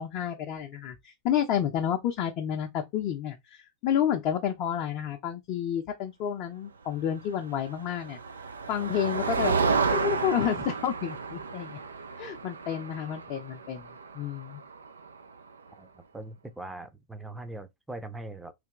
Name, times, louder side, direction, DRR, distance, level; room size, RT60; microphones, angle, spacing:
voice 1, 0.0-8.2 8.7-11.8 12.2-13.9 14.1-14.6, left 9 dB, 40° left, 0.6 m, -30 dB
Motor vehicle (road), 7.6-15.3, right 4 dB, 75° right, 0.5 m, -31 dB
voice 2, 15.8-18.5, right 2 dB, 5° right, 0.7 m, -41 dB
3.3 x 2.9 x 3.7 m
figure-of-eight pair, 90°, 0 cm